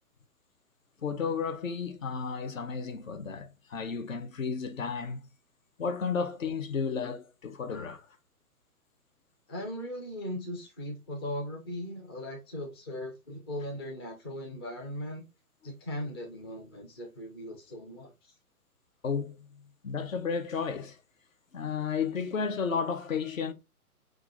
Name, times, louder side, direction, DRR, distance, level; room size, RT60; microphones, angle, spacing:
voice 1, 1.0-5.2 5.8-8.1 19.0-19.4 19.8-21.0 21.5-23.5, left 6 dB, 60° left, 0.8 m, -32 dB
voice 2, 9.5-15.2 15.6-18.1, left 1 dB, 20° left, 0.5 m, -38 dB
5.7 x 2.5 x 2.5 m
figure-of-eight pair, 125°, 46 cm